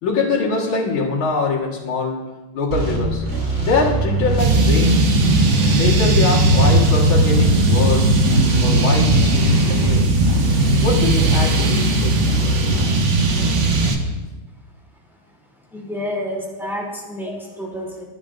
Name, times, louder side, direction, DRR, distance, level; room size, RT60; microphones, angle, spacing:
voice 1, 0.0-3.2 3.6-5.1 5.7-8.1 8.6-10.2 10.8-12.4 16.6-16.7, left 4 dB, 80° left, -4 dB, 2.4 m, -23 dB
sound 1, 2.7-13.9, right 1 dB, 75° right, 3.9 m, -23 dB
sound 2, 4.4-14.0, right 2 dB, 45° right, 1.0 m, -17 dB
voice 2, 15.7-18.0, left 1 dB, ahead, -3 dB, 2.7 m, -29 dB
21.5 x 8.8 x 2.5 m, 1.2 s
omnidirectional pair, 2.2 m